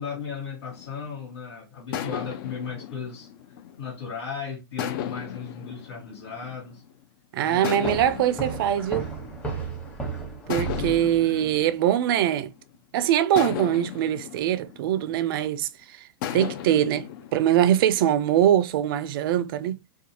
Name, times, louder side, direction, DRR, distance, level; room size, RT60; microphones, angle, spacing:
voice 1, 0.0-3.3 3.8-6.8 7.4-7.7 10.8-10.9 11.2-11.3, left 6 dB, 80° left, 1.2 m, -36 dB
sound 1, 0.7-1.3 1.9-4.2 4.8-7.0 7.6-9.9 10.5-12.8 13.4-15.6 16.2-18.5, left 10 dB, 55° left, 0.4 m, -36 dB
voice 2, 7.3-9.1 10.5-12.5 12.9-16.0 16.3-19.8, right 11 dB, 60° right, 0.4 m, -23 dB
sound 2, 7.8-11.5, right 4 dB, 10° left, 1.0 m, -34 dB
2.4 x 2.3 x 2.7 m
hypercardioid pair, 125°, 14 cm